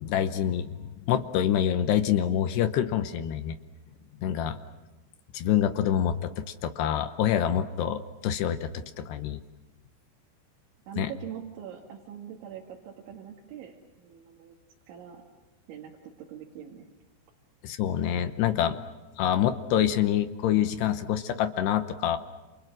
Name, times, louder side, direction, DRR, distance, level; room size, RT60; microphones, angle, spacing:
voice 1, 0.0-3.6 4.2-4.6 5.3-9.4 11.0-11.1 17.6-18.8 19.2-22.2, left 10 dB, 75° left, 9 dB, 2.8 m, -26 dB
voice 2, 10.9-14.6 14.9-15.2 15.7-16.9, right 9 dB, 80° right, 0 dB, 4.4 m, -43 dB
29.5 x 28.5 x 6.2 m, 1.1 s
omnidirectional pair, 5.4 m